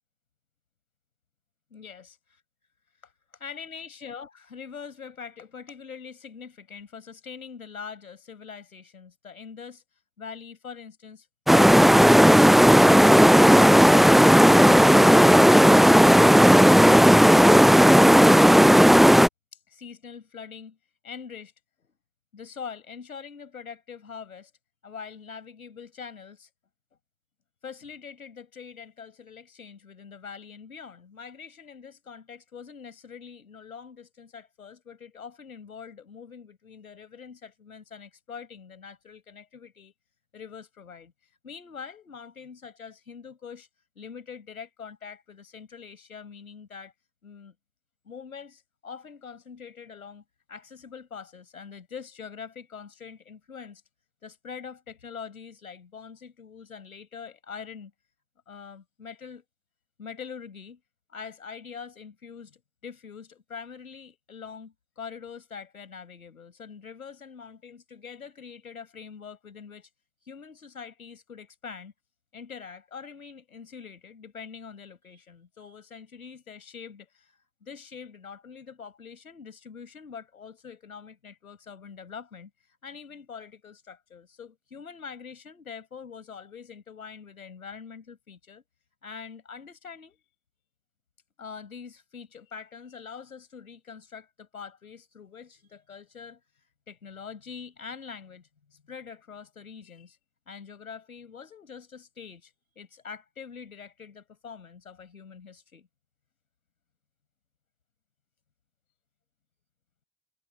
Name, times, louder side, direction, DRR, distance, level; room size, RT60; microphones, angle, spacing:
voice 1, 1.7-2.1 3.0-9.8 10.2-13.5 19.7-20.8 21.0-21.5 22.3-24.5 24.8-26.5 27.6-39.9 40.3-41.1 41.4-43.7 44.0-46.9 47.2-47.5 48.0-50.2 50.5-53.8 54.2-57.9 58.5-59.4 60.0-60.8 61.1-69.9 70.2-71.9 72.3-88.6 89.0-90.2 91.4-100.2 100.5-105.9, left 6 dB, 85° left, 6.4 m, -44 dB
sound 1, 11.5-19.3, equal, ahead, 0.4 m, -14 dB
figure-of-eight pair, 40°, 41 cm